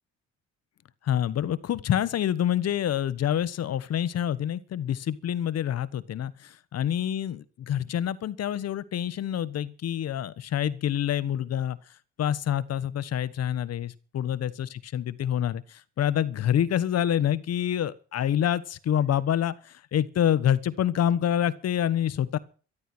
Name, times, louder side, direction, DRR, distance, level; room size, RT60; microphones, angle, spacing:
voice 1, 1.0-11.8 12.2-22.4, left 10 dB, 60° left, 1.3 m, -27 dB
13.0 x 12.5 x 6.2 m
supercardioid pair, 70°, 29 cm